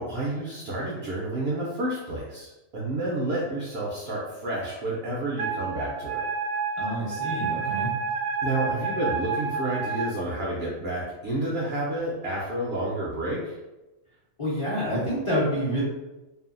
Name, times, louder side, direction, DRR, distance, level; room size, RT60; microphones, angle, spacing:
voice 1, 0.0-6.2 8.4-13.6, right 1 dB, 60° right, -4 dB, 0.7 m, -30 dB
Wind instrument woodwind instrument, 5.4-10.1, right 5 dB, 85° right, 1.0 m, -29 dB
voice 2, 6.8-7.9 14.4-15.8, equal, 30° left, -9 dB, 0.6 m, -27 dB
2.6 x 2.4 x 2.4 m, 1.0 s
omnidirectional pair, 1.4 m